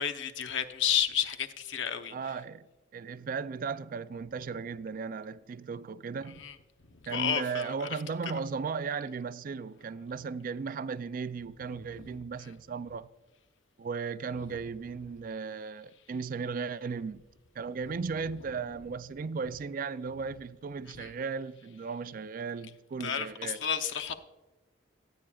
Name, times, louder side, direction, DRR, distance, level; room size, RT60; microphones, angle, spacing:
voice 1, 0.0-2.1 6.4-6.5 7.1-7.9 21.0-21.1 23.0-24.1, left 8 dB, 70° left, 0.7 m, -31 dB
voice 2, 2.1-2.7 2.9-6.4 7.1-13.1 13.8-17.2 17.6-23.6, right 5 dB, 45° right, 0.3 m, -36 dB
14.5 x 8.8 x 2.3 m
head